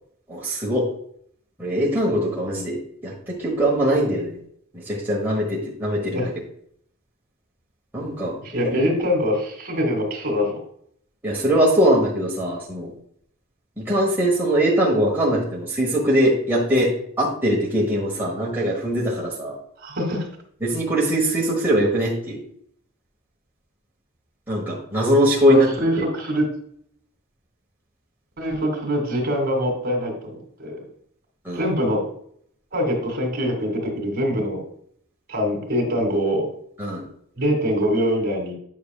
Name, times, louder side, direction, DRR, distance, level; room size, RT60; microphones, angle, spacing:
voice 1, 0.3-0.9 1.6-2.8 3.0-4.4 4.7-6.3 7.9-8.8 11.2-12.9 13.8-19.6 20.6-22.4 24.5-25.7 31.4-31.6 36.8-37.0, equal, 10° right, -5 dB, 1.2 m, -21 dB
voice 2, 8.4-10.6 19.8-20.3 25.4-26.4 28.4-30.3 30.6-30.8 31.5-32.0 32.7-34.6 35.3-36.5 37.4-38.5, equal, 45° right, 1 dB, 2.3 m, -23 dB
9.3 x 5.9 x 2.4 m, 0.66 s
head